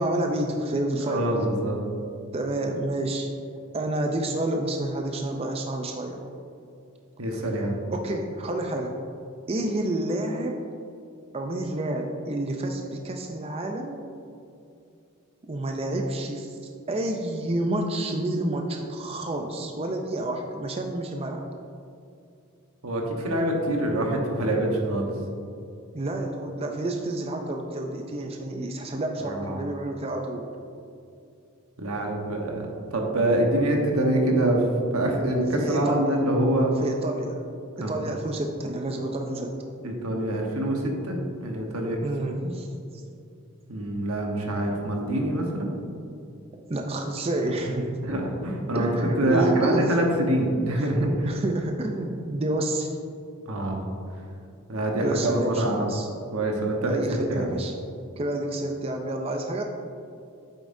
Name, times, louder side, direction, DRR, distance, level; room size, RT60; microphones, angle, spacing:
voice 1, 0.0-1.3 2.3-3.3 3.7-6.2 7.4-7.5 7.9-9.0 9.5-10.6 11.3-14.0 15.4-16.6 16.9-21.4 25.9-30.5 35.6-36.2 36.8-37.5 37.8-39.5 42.0-42.7 42.9-43.0 46.7-48.1 48.7-50.0 50.6-52.9 55.0-56.1 56.8-57.7 58.2-59.6, right 1 dB, 25° right, 3 dB, 0.4 m, -29 dB
voice 2, 1.0-1.8 7.2-7.8 22.8-25.1 29.2-29.6 31.8-32.7 32.9-34.6 34.9-36.7 37.8-37.9 39.8-42.0 42.4-42.5 43.7-45.7 48.0-48.9 49.2-51.1 53.5-53.8 54.7-55.9 56.3-57.0 57.3-57.5, right 1 dB, 85° right, 1 dB, 1.2 m, -25 dB
8.2 x 7.0 x 2.7 m, 2.6 s
head